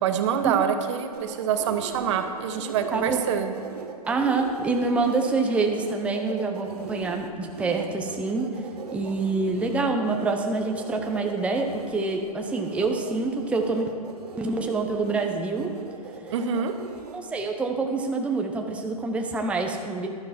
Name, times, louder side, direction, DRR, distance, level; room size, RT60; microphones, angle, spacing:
voice 1, 0.0-3.5 16.3-16.7, right 8 dB, 50° right, 8 dB, 0.9 m, -26 dB
sound 1, 1.1-17.2, right 4 dB, 80° right, 1.2 m, -40 dB
voice 2, 2.9-3.3 4.1-13.9 14.4-15.7 17.1-20.1, right 3 dB, 5° right, 2 dB, 0.7 m, -26 dB
11.5 x 10.0 x 4.4 m, 2.4 s
hypercardioid pair, 125°, 20 cm